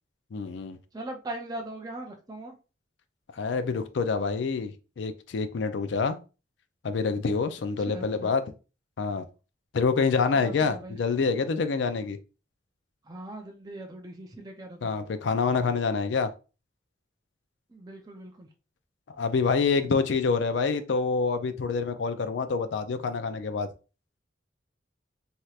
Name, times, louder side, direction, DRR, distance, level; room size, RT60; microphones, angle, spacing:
voice 1, 0.3-0.8 3.3-6.2 6.8-8.4 9.0-9.2 9.7-12.2 14.8-16.3 19.1-23.7, left 4 dB, 80° left, 0.4 m, -27 dB
voice 2, 0.9-2.5 7.9-8.3 10.0-11.0 13.1-14.9 17.7-18.5, right 1 dB, 20° right, 0.4 m, -40 dB
3.2 x 2.8 x 2.3 m
head